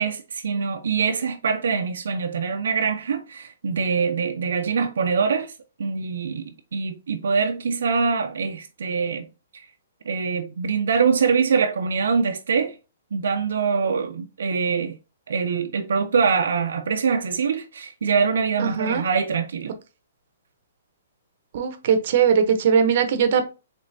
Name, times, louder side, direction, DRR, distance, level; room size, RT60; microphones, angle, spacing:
voice 1, 0.0-5.5 5.8-9.3 9.5-9.7 10.1-12.7 13.1-15.0 15.3-19.7, right 5 dB, 75° right, 0.5 m, -24 dB
voice 2, 18.6-19.0 21.5-23.4, right 7 dB, 45° right, 0.8 m, -20 dB
5.1 x 3.3 x 2.7 m
hypercardioid pair, 165°, 0 cm